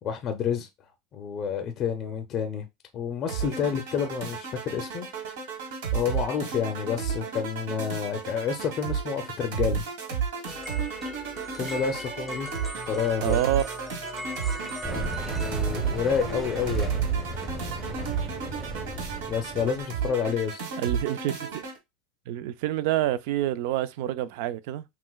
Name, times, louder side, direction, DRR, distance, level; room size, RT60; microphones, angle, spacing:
voice 1, 0.0-0.7 1.1-2.7 2.9-5.1 5.9-9.8 11.5-12.5 12.8-13.4 15.3-17.0 19.3-20.6, left 7 dB, 35° left, 0.5 m, -29 dB
sound 1, 3.3-21.8, right 6 dB, 85° right, 1.4 m, -32 dB
sound 2, 10.4-16.8, equal, ahead, 0.7 m, -39 dB
voice 2, 13.2-13.7 20.8-21.6 22.3-24.8, right 13 dB, 65° right, 0.4 m, -27 dB
sound 3, 14.8-19.8, right 2 dB, 20° right, 0.9 m, -35 dB
5.9 x 2.1 x 2.3 m
supercardioid pair, 135°, 0 cm